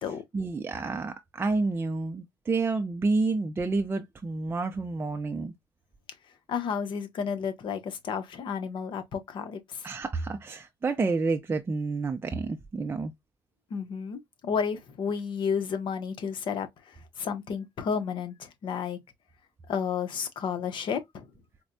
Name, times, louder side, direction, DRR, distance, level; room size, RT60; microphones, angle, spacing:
voice 1, 0.3-5.5 9.8-13.1, right 3 dB, 25° right, 0.5 m, -29 dB
voice 2, 6.5-9.9 13.7-19.0 19.7-21.2, left 6 dB, 65° left, 0.9 m, -32 dB
4.3 x 2.2 x 2.5 m
cardioid pair, 90°, 9 cm